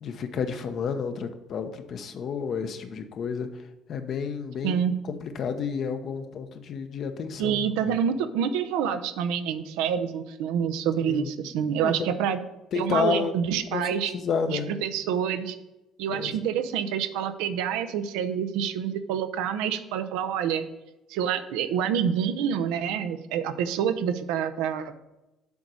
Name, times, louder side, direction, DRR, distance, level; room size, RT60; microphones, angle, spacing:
voice 1, 0.0-3.5 3.9-7.7 11.1-11.3 11.8-12.1 12.7-13.4 13.7-14.7 16.1-16.3, left 6 dB, 55° left, 8 dB, 0.8 m, -30 dB
voice 2, 4.6-4.9 7.4-12.4 12.7-14.1 14.5-15.6 16.0-20.6 21.1-24.9, right 8 dB, 85° right, 10 dB, 0.6 m, -27 dB
7.1 x 3.9 x 6.3 m, 0.97 s
supercardioid pair, 85°, 0 cm